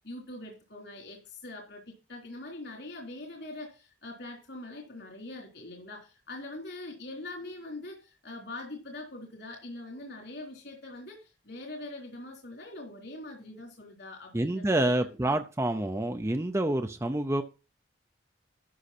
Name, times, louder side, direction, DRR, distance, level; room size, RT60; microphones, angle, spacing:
voice 1, 0.0-15.4, left 2 dB, 70° left, 0 dB, 3.7 m, -43 dB
voice 2, 14.3-17.4, right 1 dB, 15° right, 7 dB, 0.6 m, -28 dB
13.0 x 6.3 x 4.3 m, 0.32 s
head